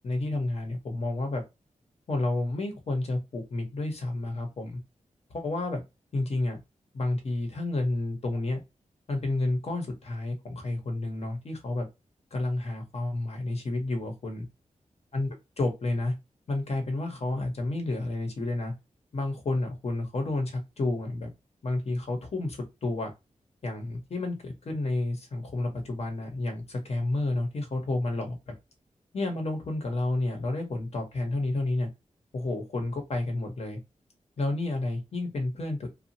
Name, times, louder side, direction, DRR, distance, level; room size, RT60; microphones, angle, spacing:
voice 1, 0.0-1.4 2.1-4.8 5.3-5.8 6.1-6.6 6.9-8.6 9.1-11.9 12.3-14.4 15.1-15.3 15.6-16.1 16.5-18.7 19.1-21.3 21.6-23.1 23.6-28.5 29.1-31.9 32.3-33.8 34.4-35.9, left 2 dB, 55° left, 5 dB, 1.0 m, -30 dB
2.7 x 2.4 x 2.8 m, 0.23 s
wide cardioid pair, 120°, 13 cm